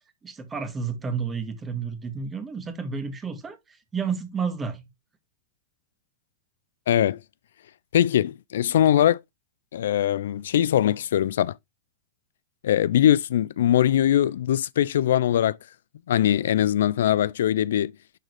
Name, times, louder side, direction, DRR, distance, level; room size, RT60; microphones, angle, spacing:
voice 1, 0.2-4.9, right 5 dB, 15° right, 1.8 m, -31 dB
voice 2, 6.9-7.2 7.9-9.2 9.7-11.6 12.6-15.6 16.1-17.9, left 11 dB, 85° left, 0.4 m, -21 dB
11.0 x 3.8 x 3.3 m
supercardioid pair, 160°, 0 cm